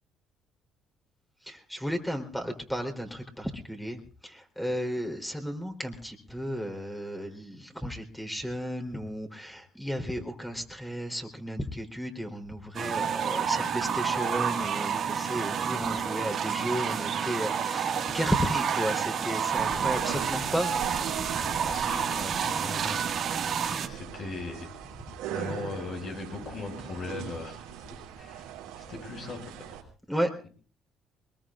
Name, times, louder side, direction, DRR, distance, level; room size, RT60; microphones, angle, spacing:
voice 1, 1.5-20.8 30.1-30.3, equal, 5° left, 3 dB, 3.8 m, -33 dB
sound 1, 12.7-23.9, right 7 dB, 55° right, 1.9 m, -29 dB
sound 2, 19.6-29.8, right 9 dB, 90° right, 3.2 m, -41 dB
voice 2, 21.7-23.0 23.9-24.7 25.3-27.6 28.1-29.7, left 3 dB, 55° left, 2 dB, 7.2 m, -39 dB
23.5 x 21.5 x 2.5 m, 0.40 s
supercardioid pair, 75°, 0 cm